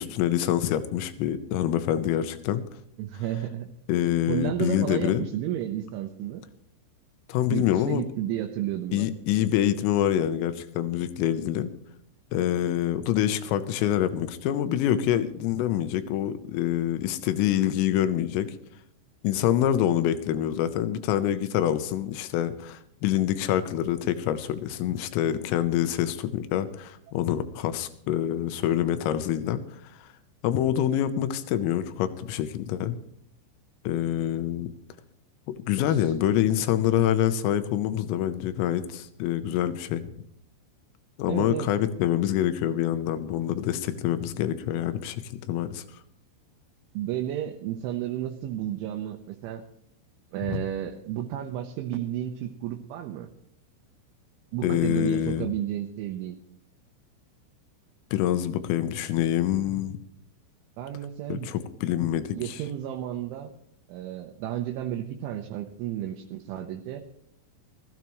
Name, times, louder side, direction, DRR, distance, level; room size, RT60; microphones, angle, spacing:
voice 1, 0.0-2.6 3.9-5.3 7.3-8.0 8.9-11.7 12.3-18.6 19.2-29.6 30.0-30.1 30.4-33.0 33.9-34.7 35.5-40.1 41.2-45.8 50.5-50.6 54.6-55.5 58.1-60.0 61.3-62.6, left 11 dB, 80° left, 11 dB, 3.5 m, -26 dB
voice 2, 3.0-3.7 4.3-6.4 7.5-9.1 35.9-36.1 36.4-37.0 41.3-41.7 46.9-49.6 50.3-53.3 54.5-56.4 60.8-61.5 62.3-63.5 63.9-67.0, right 12 dB, 75° right, 2 dB, 3.2 m, -32 dB
20.5 x 14.0 x 3.1 m, 0.70 s
omnidirectional pair, 5.9 m